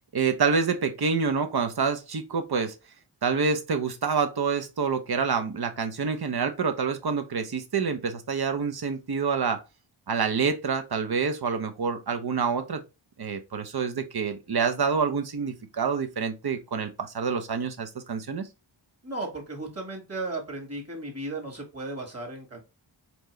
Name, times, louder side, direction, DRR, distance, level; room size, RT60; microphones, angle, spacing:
voice 1, 0.1-2.7 3.2-9.6 10.1-12.8 13.2-18.5, right 5 dB, 50° right, 0.8 m, -27 dB
voice 2, 19.0-22.6, right 2 dB, 30° right, 1.8 m, -35 dB
4.4 x 2.7 x 3.1 m
cardioid pair, 55°, 49 cm